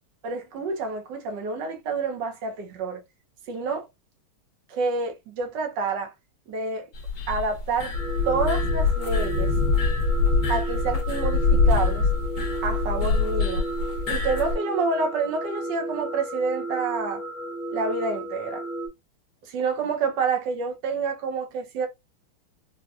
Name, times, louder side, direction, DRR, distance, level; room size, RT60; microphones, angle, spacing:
voice 1, 0.2-3.0 3.5-3.9 4.7-6.1 6.5-6.9 7.3-7.9 8.3-9.5 10.5-12.1 12.6-13.7 14.1-17.2 17.7-18.6 19.4-21.9, right 4 dB, 65° right, 1.2 m, -28 dB
sound 1, 6.9-14.6, left 4 dB, 60° left, 1.1 m, -24 dB
sound 2, 7.9-18.9, right 2 dB, 25° right, 1.0 m, -33 dB
4.2 x 2.1 x 2.3 m
omnidirectional pair, 2.3 m